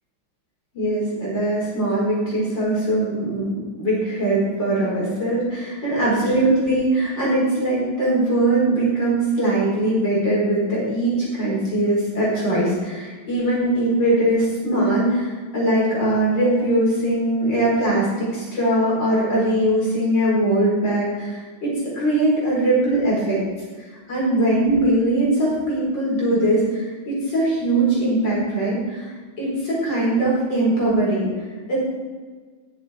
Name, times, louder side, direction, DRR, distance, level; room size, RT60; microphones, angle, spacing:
voice 1, 0.7-23.4 23.8-31.3 31.7-31.8, right 1 dB, 55° left, -6 dB, 5.2 m, -21 dB
19.5 x 7.9 x 4.4 m, 1.5 s
omnidirectional pair, 2.3 m